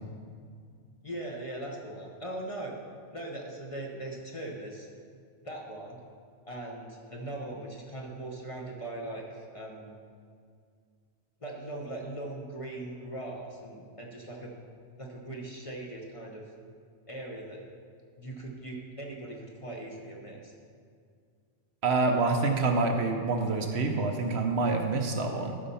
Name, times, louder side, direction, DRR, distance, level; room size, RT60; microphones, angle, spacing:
voice 1, 1.0-2.7 3.1-4.9 5.4-6.0 6.5-10.0 11.4-14.6 15.0-16.4 17.1-17.6 18.2-20.5, right 1 dB, 30° left, -1 dB, 1.0 m, -40 dB
voice 2, 21.8-25.6, right 3 dB, 65° right, 4 dB, 1.0 m, -27 dB
12.5 x 4.3 x 5.5 m, 2.1 s
omnidirectional pair, 1.2 m